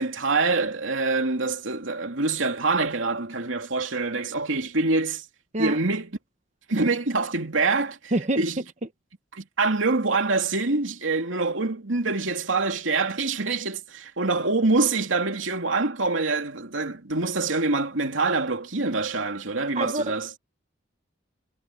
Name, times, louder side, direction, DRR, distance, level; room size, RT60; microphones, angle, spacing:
voice 1, 0.0-5.2 5.6-6.1 6.7-8.6 9.3-20.3, right 3 dB, 90° right, 2.7 m, -25 dB
voice 2, 8.1-8.4 19.7-20.1, right 2 dB, 40° right, 1.2 m, -26 dB
head